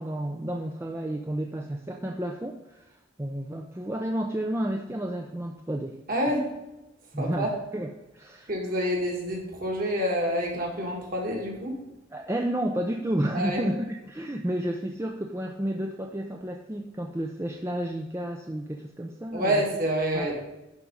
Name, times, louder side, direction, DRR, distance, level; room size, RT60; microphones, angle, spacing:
voice 1, 0.0-6.0 7.1-7.9 8.1-8.5 12.1-19.6 20.1-20.3, right 1 dB, 15° right, 2 dB, 0.4 m, -31 dB
voice 2, 6.1-6.5 7.2-7.5 8.5-11.7 13.3-13.6 19.3-20.4, equal, 45° right, -1 dB, 2.0 m, -27 dB
10.5 x 3.7 x 5.4 m, 0.99 s
head